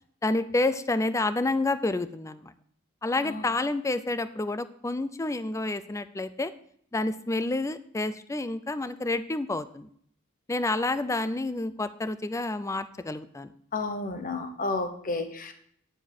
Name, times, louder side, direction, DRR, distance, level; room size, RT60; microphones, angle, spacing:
voice 1, 0.2-2.5 3.0-6.5 6.9-9.9 10.5-13.5, left 2 dB, 15° left, 13 dB, 0.4 m, -29 dB
voice 2, 13.7-15.5, left 3 dB, 40° left, 8 dB, 0.9 m, -31 dB
10.0 x 7.2 x 4.3 m, 0.64 s
head